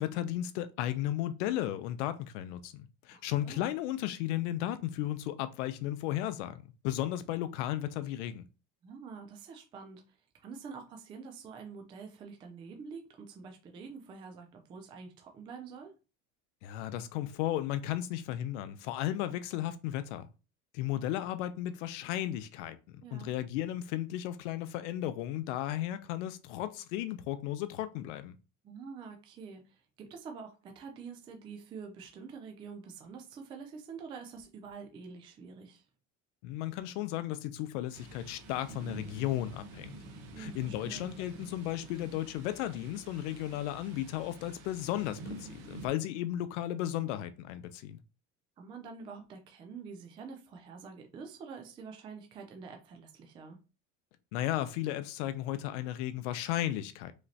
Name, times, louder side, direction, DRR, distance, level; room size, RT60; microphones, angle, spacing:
voice 1, 0.0-8.4 16.6-20.3 20.7-28.3 36.4-40.0 40.4-48.0 54.3-57.1, left 13 dB, 90° left, 0.7 m, -35 dB
voice 2, 3.1-3.7 8.8-10.0 10.4-15.9 23.0-23.3 28.6-35.8 40.3-41.1 48.6-53.6, right 5 dB, 15° right, 0.3 m, -47 dB
Thunder, 37.9-45.9, right 2 dB, 45° right, 1.1 m, -48 dB
4.9 x 3.2 x 2.8 m
cardioid pair, 170°, 35 cm